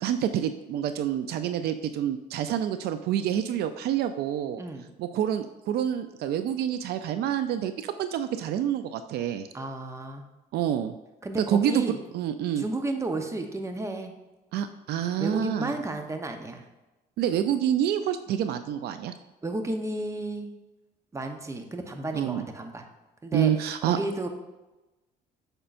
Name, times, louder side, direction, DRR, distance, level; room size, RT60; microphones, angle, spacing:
voice 1, 0.0-4.6 5.0-7.7 8.0-9.5 10.5-11.0 11.5-11.8 12.1-12.6 14.5-15.7 17.2-19.1 22.1-22.4 23.3-24.0, right 10 dB, 70° right, 10 dB, 0.4 m, -27 dB
voice 2, 9.5-10.2 11.2-12.0 12.6-14.2 15.2-16.6 19.4-20.5 21.1-22.9 23.2-23.5 23.8-24.3, right 2 dB, 15° right, 5 dB, 0.9 m, -32 dB
8.8 x 6.6 x 2.5 m, 1.1 s
cardioid pair, 110°, 17 cm